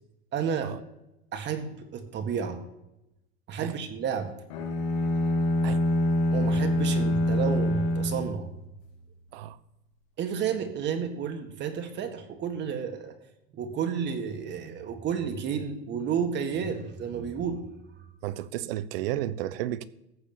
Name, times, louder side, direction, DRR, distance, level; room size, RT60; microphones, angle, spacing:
voice 1, 0.3-0.7 1.3-2.6 3.5-4.3 6.3-8.5 10.2-13.1 13.5-17.6, right 7 dB, 40° right, 1.8 m, -31 dB
sound 1, 4.5-8.9, left 1 dB, 70° left, 2.8 m, -26 dB
voice 2, 18.2-19.9, right 13 dB, 80° right, 0.9 m, -32 dB
14.5 x 4.9 x 8.8 m
supercardioid pair, 130°, 29 cm